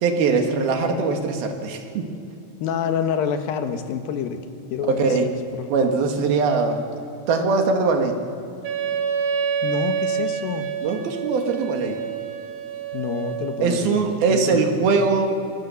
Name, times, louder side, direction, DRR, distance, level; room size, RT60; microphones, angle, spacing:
voice 1, 0.0-2.1 4.8-5.3 5.7-6.8 7.3-8.2 10.8-12.0 13.6-15.3, right 4 dB, 60° right, 4 dB, 3.4 m, -21 dB
voice 2, 2.6-4.4 4.7-5.9 9.6-10.7 12.9-15.0, left 7 dB, 65° left, 7 dB, 2.7 m, -28 dB
Wind instrument woodwind instrument, 8.6-13.7, right 7 dB, 80° right, 4.5 m, -27 dB
26.0 x 23.0 x 7.1 m, 2.7 s
omnidirectional pair, 5.2 m